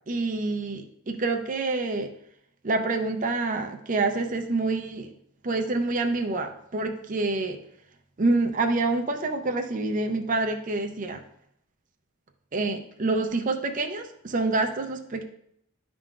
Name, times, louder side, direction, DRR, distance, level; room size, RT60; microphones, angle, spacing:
voice 1, 0.1-2.1 2.6-5.1 5.4-7.6 8.2-11.2 12.5-15.2, right 3 dB, 40° right, 5 dB, 0.5 m, -27 dB
11.0 x 3.7 x 2.4 m, 0.72 s
head